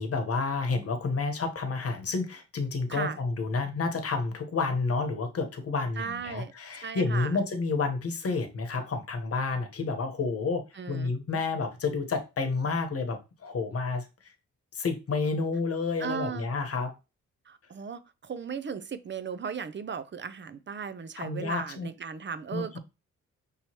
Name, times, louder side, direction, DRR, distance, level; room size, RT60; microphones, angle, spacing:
voice 1, 0.0-14.0 14.7-16.9 21.2-21.9 22.5-22.8, left 4 dB, 50° left, 1.1 m, -30 dB
voice 2, 2.9-3.2 6.0-6.5 6.8-7.4 10.7-11.1 16.0-16.5 17.5-22.8, right 6 dB, 40° right, 0.6 m, -36 dB
5.4 x 3.0 x 2.9 m
cardioid pair, 65°, 30 cm